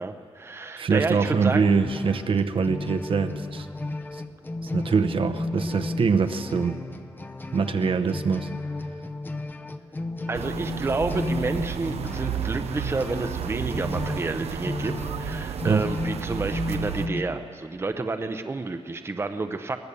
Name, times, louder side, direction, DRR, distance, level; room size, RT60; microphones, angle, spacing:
voice 1, 0.0-1.7 10.3-19.8, right 3 dB, 25° right, 7 dB, 0.7 m, -30 dB
voice 2, 0.8-3.7 4.1-4.2 4.6-6.8 7.5-8.5 15.6-15.9, right 5 dB, 60° right, 7 dB, 0.9 m, -24 dB
sound 1, 1.1-17.2, left 2 dB, 20° left, 0.7 m, -34 dB
sound 2, 10.3-17.1, right 9 dB, 85° right, 0.6 m, -32 dB
22.5 x 18.0 x 6.9 m, 2.5 s
wide cardioid pair, 140°, 10 cm